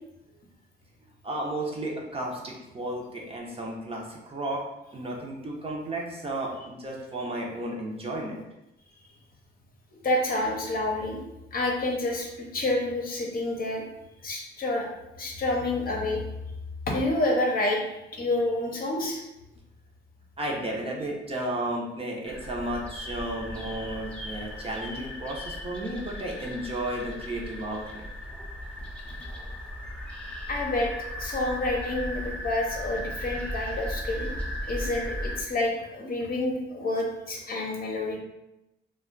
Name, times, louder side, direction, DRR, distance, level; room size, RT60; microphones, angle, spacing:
voice 1, 1.2-4.6 4.9-8.4 20.4-28.1, right 1 dB, 30° right, -2 dB, 0.7 m, -33 dB
voice 2, 9.9-11.2 11.5-13.8 14.2-14.9 15.2-16.2 16.9-19.2 30.5-30.9 31.2-34.3 34.6-38.2, left 2 dB, 50° left, 0 dB, 0.7 m, -28 dB
sound 1, 22.3-35.4, equal, 5° left, 0.6 m, -36 dB
2.4 x 2.2 x 3.7 m, 0.93 s
cardioid pair, 90°, 20 cm